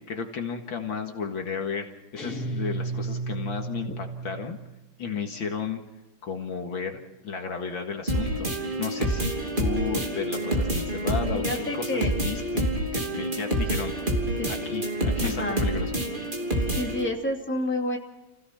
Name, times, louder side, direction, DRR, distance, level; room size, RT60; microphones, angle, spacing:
voice 1, 0.1-1.9 2.1-4.6 5.0-5.8 6.2-8.5 8.8-9.3 9.6-14.1 14.5-15.9, left 6 dB, 65° left, 4 dB, 2.4 m, -33 dB
sound 1, 2.2-4.7, right 3 dB, 45° left, 3.7 m, -33 dB
sound 2, 8.1-17.1, right 1 dB, 20° right, 3.1 m, -27 dB
voice 2, 11.3-12.1 14.4-14.5 15.2-15.7 16.8-18.0, left 1 dB, 5° left, 0 dB, 2.6 m, -29 dB
29.0 x 16.5 x 5.8 m, 1.0 s
omnidirectional pair, 2.4 m